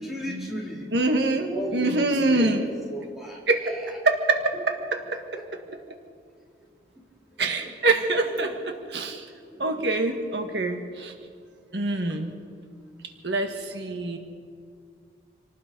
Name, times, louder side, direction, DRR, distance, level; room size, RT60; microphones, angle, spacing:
voice 1, 0.0-0.9 1.5-2.5 2.9-3.4 7.6-7.7 8.3-8.5 9.5-9.7, equal, ahead, -5 dB, 4.2 m, -34 dB
voice 2, 0.9-2.7 3.5-3.8 4.0-5.6 7.4-9.3 9.6-11.1 11.7-12.3 13.2-14.2, right 2 dB, 75° right, 5 dB, 1.6 m, -25 dB
27.0 x 18.5 x 5.4 m, 2.2 s
head